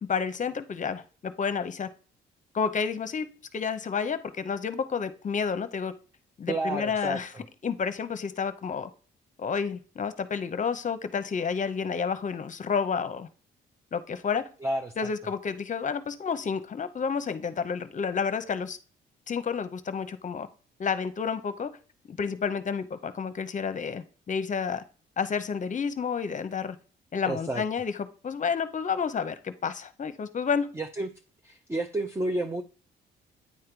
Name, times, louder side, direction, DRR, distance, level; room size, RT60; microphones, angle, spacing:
voice 1, 0.0-1.9 2.5-5.9 6.4-7.3 7.6-8.9 9.4-13.3 13.9-14.5 15.0-18.8 19.3-20.5 20.8-21.7 22.1-24.8 25.2-26.8 27.1-30.7, left 6 dB, 40° left, 12 dB, 0.8 m, -30 dB
voice 2, 6.5-7.2 14.6-15.1 27.2-27.6 30.7-31.1 31.4-32.6, right 2 dB, 15° right, 4 dB, 0.7 m, -30 dB
9.4 x 3.6 x 4.6 m, 0.38 s
cardioid pair, 90°, 20 cm